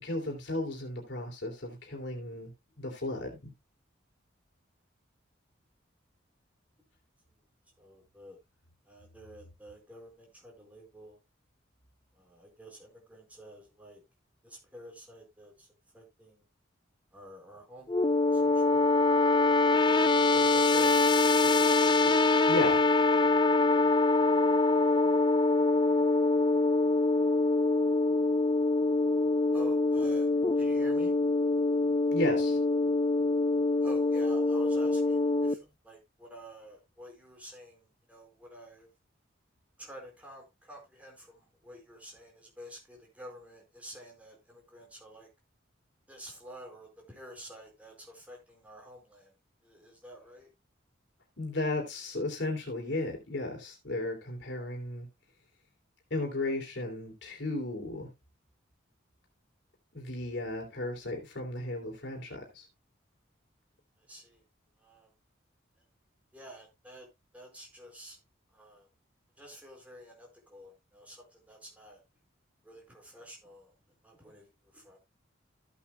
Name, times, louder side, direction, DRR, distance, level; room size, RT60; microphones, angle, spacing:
voice 1, 0.0-2.5 2.8-3.5 22.5-22.7 32.1-32.6 51.4-55.1 56.1-58.1 59.9-62.6, left 2 dB, 65° left, 3.1 m, -34 dB
voice 2, 7.8-8.4 8.8-11.2 12.1-14.0 14.4-15.7 15.9-16.5 17.1-18.9 19.4-22.1 28.9-29.1 29.5-31.2 33.8-38.9 39.8-45.3 46.1-49.3 49.6-50.5 64.0-64.4 64.8-65.1 66.3-67.1 67.3-68.2 68.5-68.9 69.4-72.0 72.6-73.7 74.0-75.0, equal, 5° right, 4.4 m, -50 dB
sound 1, 17.9-35.5, left 3 dB, 25° left, 0.4 m, -24 dB
14.5 x 8.5 x 2.2 m
head